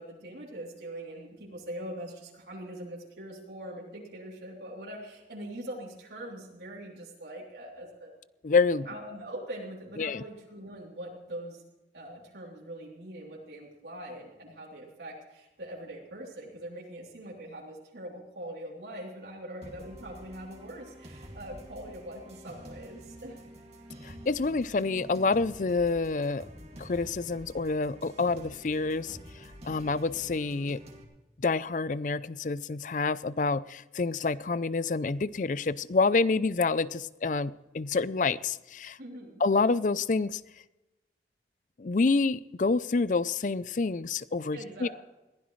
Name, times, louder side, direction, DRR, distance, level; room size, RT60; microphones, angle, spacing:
voice 1, 0.0-8.1 8.8-11.6 11.9-23.4 39.0-39.4 44.5-44.9, right 1 dB, 75° right, -4 dB, 3.2 m, -42 dB
voice 2, 8.4-8.9 10.0-10.2 24.0-26.5 26.8-29.2 29.6-30.8 31.4-39.0 39.4-40.4 41.8-44.9, left 4 dB, 45° left, 18 dB, 0.5 m, -28 dB
sound 1, 19.6-31.0, equal, 35° right, 2.4 m, -48 dB
21.5 x 16.0 x 3.2 m, 1.0 s
head